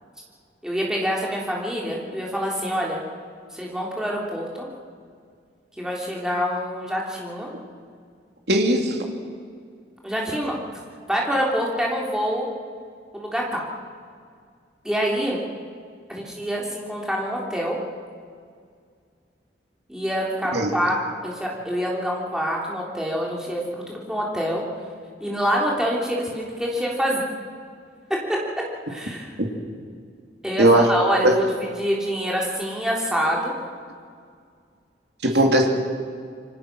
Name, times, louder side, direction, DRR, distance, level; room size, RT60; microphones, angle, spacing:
voice 1, 0.6-3.0 3.5-4.7 5.8-7.5 10.0-10.6 11.1-12.5 13.1-13.6 14.8-15.4 16.1-17.8 19.9-21.0 21.2-24.6 25.2-27.2 28.1-28.4 28.9-29.3 30.4-33.5, equal, 5° right, -3 dB, 3.6 m, -26 dB
voice 2, 8.5-9.0 20.5-20.7 29.4-29.5 30.6-30.9 31.2-31.3 35.2-35.7, right 1 dB, 70° right, 1 dB, 2.8 m, -18 dB
27.0 x 24.0 x 6.3 m, 2.1 s
head